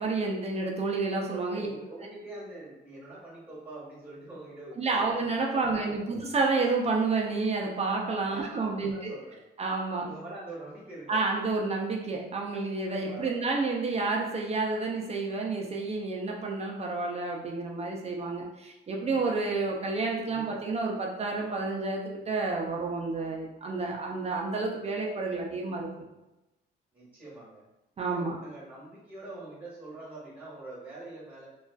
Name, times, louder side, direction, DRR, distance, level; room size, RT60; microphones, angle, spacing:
voice 1, 0.0-1.7 4.8-9.1 9.6-10.1 11.1-26.0 28.0-28.4, right 3 dB, 30° right, 0 dB, 0.4 m, -30 dB
voice 2, 1.3-5.2 5.5-6.1 8.2-9.4 10.0-11.4 13.1-13.5 20.3-20.6 26.9-27.6 28.0-31.5, right 2 dB, 10° right, -8 dB, 1.2 m, -44 dB
2.4 x 2.3 x 2.2 m, 0.96 s
cardioid pair, 90°, 20 cm